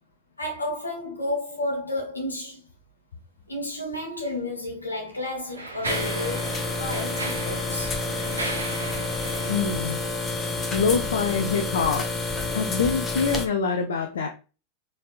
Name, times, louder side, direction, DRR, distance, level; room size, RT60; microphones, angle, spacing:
voice 1, 0.4-2.7 3.5-8.2, left 1 dB, 80° left, 1.5 m, -32 dB
Mechanisms, 4.2-4.3 5.1-10.8, right 2 dB, 75° right, 0.9 m, -35 dB
sound 1, 5.8-13.5, left 3 dB, 20° left, 0.8 m, -29 dB
voice 2, 9.5-10.0 10.3-10.4 10.7-12.1 12.5-14.3, left 5 dB, 65° left, 0.5 m, -25 dB
4.2 x 3.3 x 2.5 m
figure-of-eight pair, 90°, 0 cm